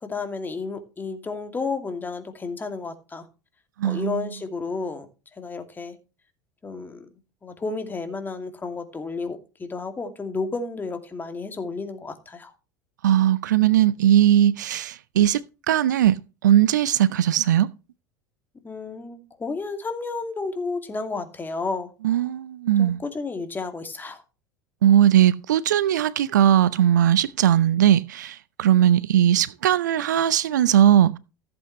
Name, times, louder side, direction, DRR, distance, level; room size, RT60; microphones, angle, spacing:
voice 1, 0.0-3.3 3.8-5.1 5.4-6.0 6.6-7.1 7.4-12.5 18.6-21.9 22.8-24.2, left 4 dB, 20° left, 2.4 m, -32 dB
voice 2, 3.8-4.2 13.0-15.4 15.7-16.2 16.4-17.7 22.0-23.0 24.8-31.2, right 11 dB, 70° right, 0.5 m, -19 dB
15.0 x 7.9 x 3.1 m
figure-of-eight pair, 75°, 10 cm